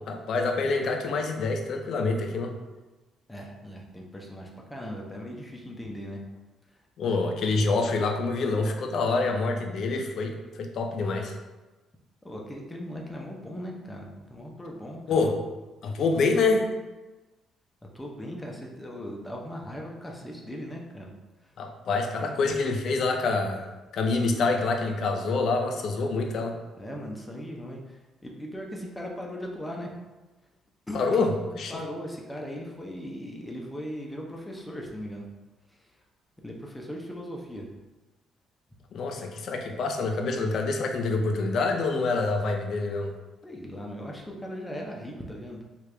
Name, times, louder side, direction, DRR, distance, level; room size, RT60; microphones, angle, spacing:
voice 1, 0.1-2.5 7.0-11.3 15.1-15.4 15.8-16.7 21.6-23.7 23.9-26.6 30.9-31.3 31.6-31.7 38.9-43.1, left 3 dB, 60° left, 3 dB, 0.4 m, -26 dB
voice 2, 3.3-6.2 6.7-6.8 12.2-15.3 17.8-21.1 21.4-21.5 22.2-22.3 26.8-29.9 30.9-31.3 31.7-35.3 35.7-35.9 36.4-37.7 43.4-45.6, equal, 10° left, -1 dB, 0.6 m, -38 dB
3.3 x 2.4 x 3.2 m, 1.1 s
cardioid pair, 95°, 0 cm